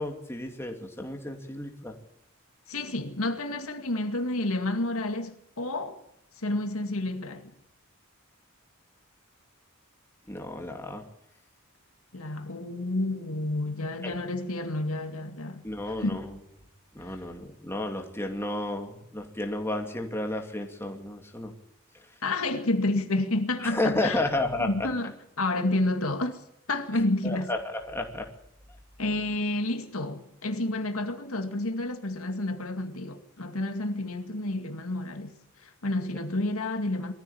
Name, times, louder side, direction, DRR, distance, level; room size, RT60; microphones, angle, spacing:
voice 1, 0.0-2.0 10.3-11.0 14.0-14.1 15.6-16.3 16.9-21.5 23.6-24.9 27.2-28.3, left 2 dB, 10° left, 2.6 m, -32 dB
voice 2, 2.7-6.0 6.4-7.5 12.1-16.2 17.0-17.2 22.2-24.3 24.6-26.4 26.7-27.5 29.0-37.1, left 2 dB, 75° left, 2.3 m, -30 dB
22.0 x 14.5 x 8.7 m
head